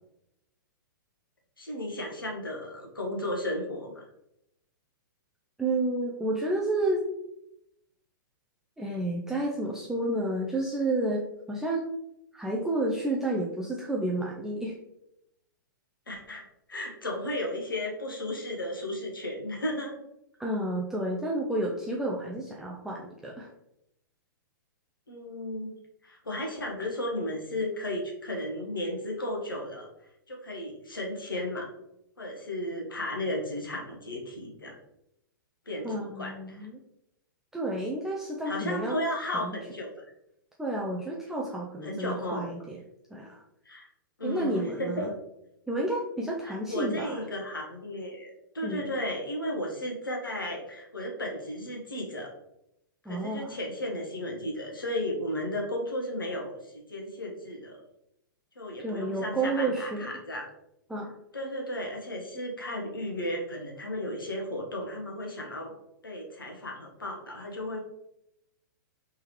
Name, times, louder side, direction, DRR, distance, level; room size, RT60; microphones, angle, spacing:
voice 1, 1.6-4.0 16.1-16.4 16.7-20.0 25.1-25.7 26.0-29.9 30.3-31.7 32.2-34.7 35.7-36.7 38.5-40.0 41.8-42.5 43.6-43.9 44.2-45.1 46.4-52.3 53.1-57.8 58.6-60.5 61.3-65.7 66.0-67.8, left 1 dB, 80° left, 0 dB, 1.1 m, -34 dB
voice 2, 5.6-7.1 8.8-11.9 12.3-14.8 20.4-23.5 35.8-36.8 37.5-39.6 40.6-42.8 43.1-43.4 44.2-45.1 45.7-47.3 48.6-48.8 53.1-53.6 58.8-60.0 60.9-61.1, right 2 dB, 5° right, -2 dB, 0.4 m, -31 dB
3.5 x 3.2 x 3.0 m, 0.82 s
figure-of-eight pair, 110°, 11 cm